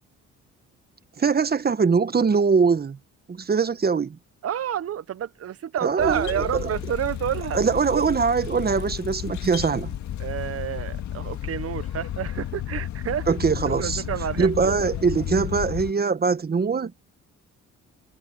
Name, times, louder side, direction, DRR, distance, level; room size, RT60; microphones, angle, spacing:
voice 1, 1.2-3.0 3.3-4.2 5.8-6.7 7.5-10.0 13.3-14.0 14.4-16.9, right 5 dB, 30° right, 1.2 m, -22 dB
voice 2, 4.4-8.1 10.2-13.3 13.7-14.8, right 10 dB, 50° right, 0.8 m, -29 dB
sound 1, 6.0-15.9, left 11 dB, 70° left, 1.8 m, -32 dB
cardioid pair, 90°, 30 cm